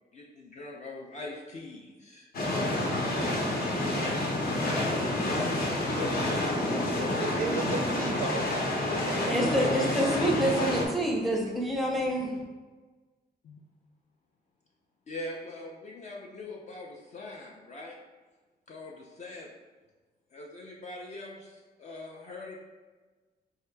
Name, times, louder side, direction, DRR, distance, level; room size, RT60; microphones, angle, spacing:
voice 1, 0.1-2.3 4.6-4.7 6.0-6.1 8.9-9.3 9.6-9.9 13.4-13.6 15.1-18.0 18.7-19.5 20.3-22.6, left 2 dB, 45° left, 0.4 m, -42 dB
sound 1, 2.3-10.9, left 1 dB, 60° left, 0.8 m, -29 dB
sound 2, 2.9-3.3 4.1-4.3 5.5-6.5 7.2-7.4, left 1 dB, 90° left, 1.4 m, -42 dB
voice 2, 7.2-9.4 9.9-10.0 10.5-10.7, right 6 dB, 55° right, 0.4 m, -36 dB
voice 3, 9.3-12.4, right 1 dB, ahead, 0.6 m, -27 dB
4.5 x 2.8 x 3.3 m
wide cardioid pair, 175°, 17 cm